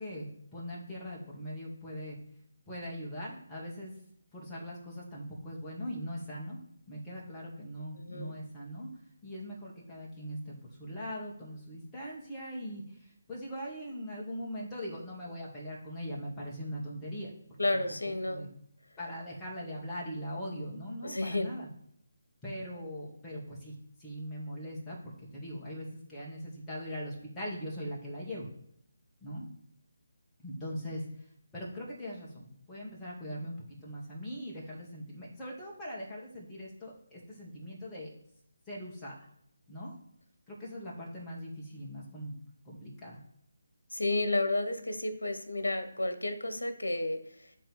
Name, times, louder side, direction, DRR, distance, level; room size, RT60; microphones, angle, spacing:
voice 1, 0.0-2.2 2.7-3.9 4.3-6.6 6.9-8.9 9.2-17.3 17.7-17.8 18.3-18.5 19.0-21.7 22.4-23.7 24.0-28.5 29.2-29.4 30.4-31.0 31.5-38.1 38.7-39.2 39.7-40.0 40.5-42.4 42.6-43.2, equal, 10° left, -6 dB, 2.2 m, -41 dB
voice 2, 8.0-8.3 17.6-18.5 21.0-21.5 43.9-47.2, left 2 dB, 80° left, 9 dB, 1.1 m, -31 dB
10.0 x 3.8 x 4.8 m, 0.71 s
figure-of-eight pair, 155°, 0 cm